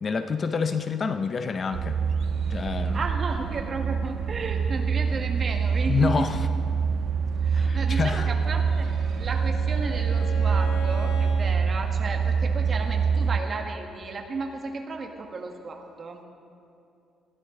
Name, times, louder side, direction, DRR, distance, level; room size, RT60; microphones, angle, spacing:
voice 1, 0.0-2.0 2.4-3.0 5.9-6.4 7.5-8.3, left 5 dB, 35° left, 9 dB, 0.6 m, -27 dB
sound 1, 1.7-13.4, right 6 dB, 55° right, 0.4 m, -25 dB
voice 2, 2.9-6.3 7.4-8.9 9.2-16.2, right 4 dB, 35° right, 3 dB, 1.6 m, -34 dB
Bowed string instrument, 8.3-11.5, left 2 dB, 85° left, 2.6 m, -40 dB
20.0 x 14.5 x 3.8 m, 2.6 s
cardioid pair, 135°, 0 cm